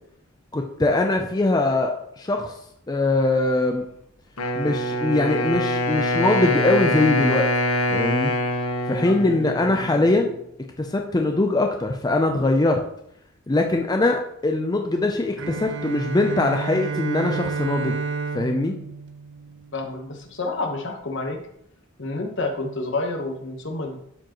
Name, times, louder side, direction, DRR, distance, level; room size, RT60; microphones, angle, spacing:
voice 1, 0.5-2.5 2.9-3.8 4.6-7.5 7.9-8.3 8.9-10.3 10.8-12.8 13.5-18.0 18.3-18.8, left 2 dB, 20° left, 3 dB, 0.4 m, -22 dB
Wind instrument woodwind instrument, 4.4-10.3, left 1 dB, 90° left, 1.2 m, -24 dB
Bowed string instrument, 15.4-20.1, right 4 dB, 55° right, 0.6 m, -30 dB
voice 2, 19.7-21.4 22.0-24.0, left 2 dB, 60° left, 4 dB, 1.1 m, -29 dB
12.0 x 4.7 x 3.0 m, 0.75 s
head